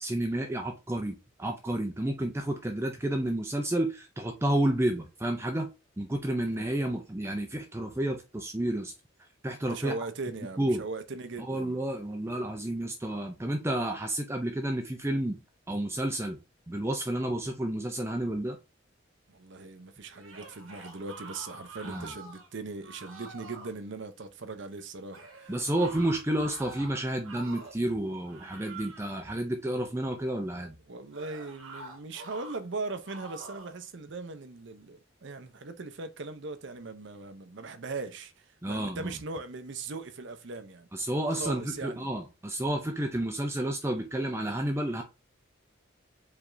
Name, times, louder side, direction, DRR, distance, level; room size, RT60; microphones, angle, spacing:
voice 1, 0.0-5.7 6.0-8.9 9.4-9.9 10.6-10.8 11.5-16.4 16.7-18.6 21.9-22.1 25.5-30.7 38.6-39.1 40.9-45.0, right 1 dB, 15° right, 0.5 m, -30 dB
voice 2, 9.7-11.8 19.3-25.5 30.9-40.9 41.3-42.1, right 3 dB, 60° right, 0.7 m, -39 dB
sound 1, 20.1-22.5 22.8-23.7 25.1-27.8 28.3-29.2 31.1-32.6 33.0-33.8, right 3 dB, 80° right, 1.4 m, -46 dB
4.8 x 3.4 x 2.6 m
head